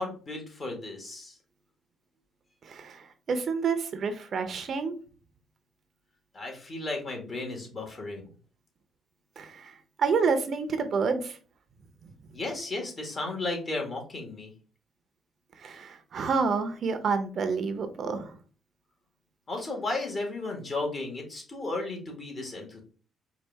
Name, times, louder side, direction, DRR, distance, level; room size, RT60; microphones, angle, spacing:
voice 1, 0.0-1.3 6.3-8.3 12.3-14.5 19.5-22.8, left 2 dB, 40° left, 1 dB, 1.5 m, -34 dB
voice 2, 2.6-4.9 9.4-11.4 15.6-18.3, right 5 dB, 55° right, 8 dB, 0.6 m, -29 dB
4.6 x 2.4 x 3.3 m, 0.39 s
cardioid pair, 90°, 0 cm